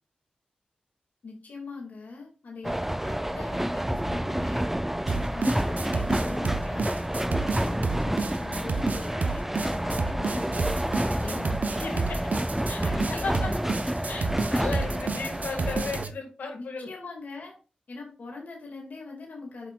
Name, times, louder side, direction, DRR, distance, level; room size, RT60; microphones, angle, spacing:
voice 1, 1.2-4.7 5.1-6.9 7.2-11.6 12.8-13.4 16.6-17.5 17.9-19.7, left 3 dB, 70° left, -1 dB, 2.3 m, -41 dB
sound 1, 2.6-16.1, right 1 dB, 10° right, 0.5 m, -29 dB
sound 2, 5.1-16.1, right 4 dB, 65° right, 0.8 m, -30 dB
voice 2, 11.7-12.2 12.7-12.8 13.1-13.5 14.1-16.9, left 4 dB, 85° left, 3 dB, 2.0 m, -35 dB
8.2 x 5.7 x 2.5 m, 0.35 s
cardioid pair, 45°, 3 cm